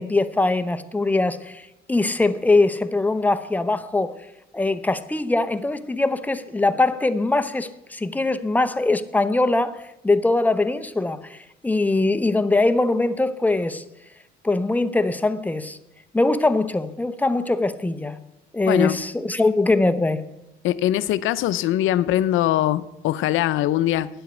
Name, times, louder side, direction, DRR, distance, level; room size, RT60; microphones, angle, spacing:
voice 1, 0.0-1.6 1.9-4.1 4.5-11.4 11.6-13.8 14.4-15.8 16.1-18.2 18.5-20.3, left 2 dB, 10° left, 0.7 m, -22 dB
voice 2, 18.7-19.0 20.6-24.1, left 13 dB, 85° left, 0.5 m, -22 dB
9.8 x 8.0 x 8.1 m
cardioid pair, 90°, 20 cm